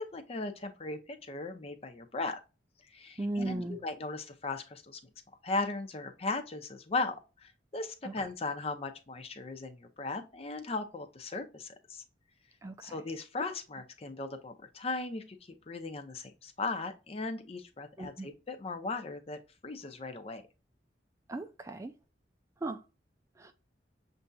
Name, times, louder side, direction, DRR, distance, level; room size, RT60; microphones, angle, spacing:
voice 1, 0.0-2.4 2.9-5.0 5.4-12.0 12.8-15.4 15.7-20.4, left 3 dB, 35° left, 0.6 m, -37 dB
voice 2, 3.2-3.8 8.0-8.1 12.6-13.0 18.0-18.3 21.3-21.9 22.6-22.8 23.4-23.5, right 2 dB, 15° right, 0.3 m, -36 dB
6.7 x 2.6 x 2.3 m
head